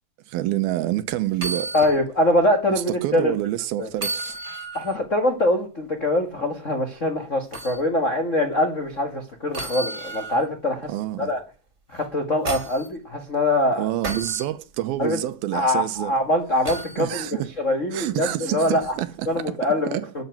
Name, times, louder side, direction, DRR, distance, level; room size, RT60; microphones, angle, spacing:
voice 1, 0.3-1.7 2.7-4.4 10.9-11.3 13.8-16.1 17.0-17.5 17.9-20.1, right 14 dB, 80° right, 2.6 m, -27 dB
sound 1, 1.3-2.0 2.4-2.5 3.9-5.0 7.5-7.8 9.5-10.5 12.0-12.9 14.0-14.5 16.6-17.0 18.8-18.9, right 2 dB, 20° right, 2.2 m, -32 dB
voice 2, 1.7-3.3 3.8-3.9 4.7-10.9 11.2-11.4 11.9-13.9 15.0-15.2 15.5-17.3 17.6-18.9 19.3-20.2, left 1 dB, 75° left, 0.7 m, -23 dB
13.0 x 7.1 x 9.2 m
omnidirectional pair, 4.6 m